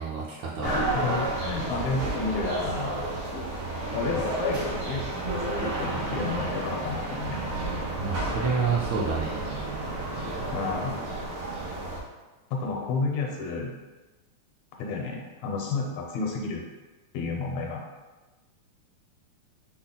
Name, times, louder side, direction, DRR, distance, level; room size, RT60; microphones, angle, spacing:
voice 1, 0.0-0.8 8.0-9.5, right 5 dB, 75° right, -4 dB, 1.9 m, -29 dB
voice 2, 0.6-3.0 3.3-3.5 3.9-7.4 10.5-11.0 12.5-13.7 14.8-16.6 17.1-17.8, left 4 dB, 80° left, 0 dB, 1.9 m, -31 dB
sound 1, 0.6-12.0, right 2 dB, 90° right, 2.3 m, -31 dB
5.9 x 2.2 x 3.8 m, 1.2 s
omnidirectional pair, 3.4 m